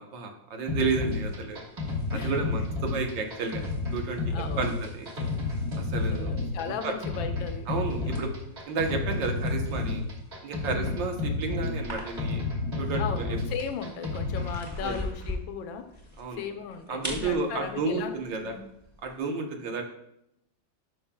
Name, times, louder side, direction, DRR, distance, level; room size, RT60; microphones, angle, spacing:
voice 1, 0.0-1.6 2.1-3.6 3.9-5.1 5.8-6.3 6.8-6.9 7.7-8.3 8.7-10.0 10.4-12.4 12.8-13.4 14.8-14.9 16.2-16.4 16.9-18.6 19.0-19.8, right 4 dB, 70° right, 3 dB, 1.6 m, -31 dB
sound 1, 0.7-14.6, left 3 dB, 35° right, 1.6 m, -31 dB
sound 2, 1.0-19.2, left 1 dB, 10° right, 1.1 m, -45 dB
voice 2, 2.1-2.6 4.3-4.6 5.2-5.3 6.1-7.7 8.0-8.2 10.6-10.9 13.0-15.9 16.3-18.6, left 7 dB, 80° left, 7 dB, 1.4 m, -37 dB
11.5 x 5.4 x 2.2 m, 0.77 s
omnidirectional pair, 2.1 m